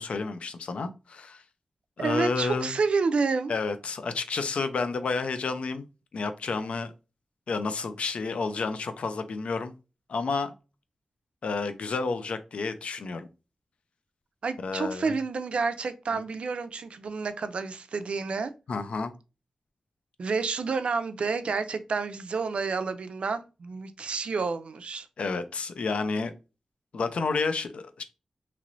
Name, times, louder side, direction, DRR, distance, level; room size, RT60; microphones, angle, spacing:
voice 1, 0.0-1.4 2.0-2.7 3.5-5.9 6.1-6.9 7.5-9.7 10.1-10.5 11.4-13.3 14.6-15.1 16.1-16.2 18.7-19.1 25.2-26.3 26.9-28.0, left 4 dB, 80° left, 0.4 m, -30 dB
voice 2, 2.0-3.5 14.4-18.5 20.2-25.1, right 4 dB, 70° right, 0.3 m, -29 dB
3.0 x 2.9 x 2.5 m
wide cardioid pair, 135°, 2 cm